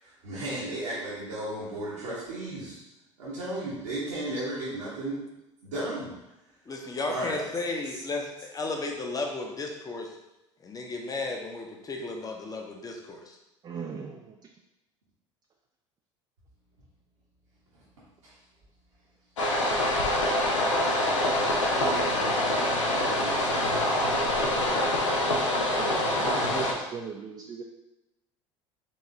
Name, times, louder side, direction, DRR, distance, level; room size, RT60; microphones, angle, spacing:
voice 1, 0.0-2.8 3.2-5.3 5.6-6.3 7.1-7.5 7.8-8.0 17.7-17.8 18.2-18.3 20.9-24.0, right 1 dB, 75° right, -9 dB, 1.1 m, -35 dB
voice 2, 6.7-10.2 10.6-13.4, left 3 dB, 25° left, 1 dB, 0.8 m, -34 dB
voice 3, 13.6-14.4 25.7-27.6, right 5 dB, 30° right, 1 dB, 0.4 m, -38 dB
sound 1, 19.4-26.7, left 1 dB, 80° left, 0.6 m, -25 dB
4.7 x 2.9 x 2.7 m, 0.95 s
figure-of-eight pair, 65°, 16 cm